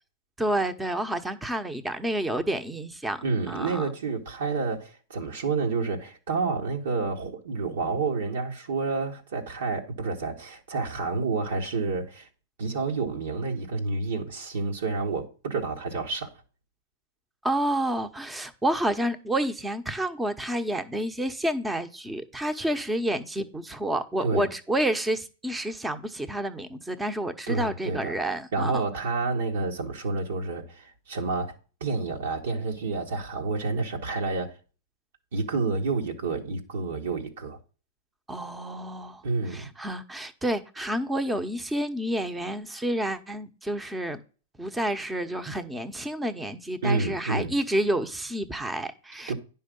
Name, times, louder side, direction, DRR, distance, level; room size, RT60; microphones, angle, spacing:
voice 1, 0.4-3.9 17.4-28.8 38.3-39.2 39.5-44.2 44.6-49.3, right 1 dB, 10° right, 1.0 m, -29 dB
voice 2, 3.2-12.3 12.6-16.3 24.2-24.5 27.5-34.6 35.3-37.6 39.2-39.7 46.8-47.5 49.3-49.4, right 4 dB, 75° right, 1.7 m, -29 dB
10.0 x 5.6 x 5.3 m
hypercardioid pair, 115°, 0 cm